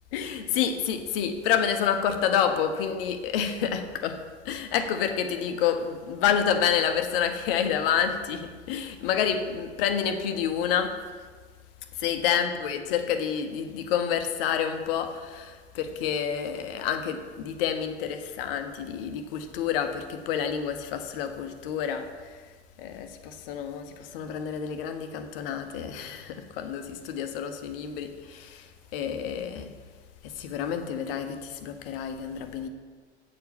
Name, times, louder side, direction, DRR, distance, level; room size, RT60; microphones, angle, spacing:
voice 1, 0.1-4.2 4.4-11.0 12.0-22.4 22.8-29.7 30.2-32.7, left 8 dB, 55° left, 7 dB, 1.0 m, -28 dB
8.5 x 4.6 x 6.9 m, 1.5 s
figure-of-eight pair, 85°, 34 cm